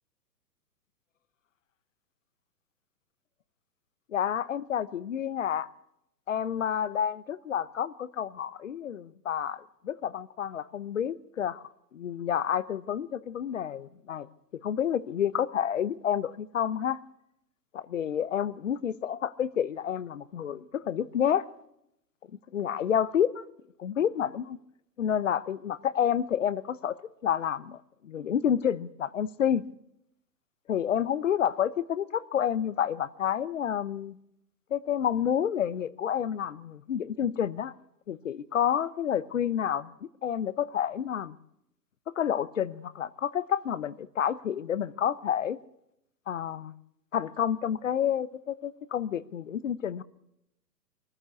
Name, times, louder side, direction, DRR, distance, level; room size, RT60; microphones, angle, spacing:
voice 1, 4.1-5.7 6.3-11.6 11.9-14.3 14.6-17.0 17.7-21.5 22.5-23.4 23.8-24.6 25.0-27.0 27.2-29.6 30.7-34.2 34.7-37.7 38.1-39.9 40.2-41.3 42.2-45.6 46.3-46.7 47.1-50.0, left 9 dB, 50° left, 1.0 m, -29 dB
23.5 x 14.5 x 8.2 m
figure-of-eight pair, 120°, 50 cm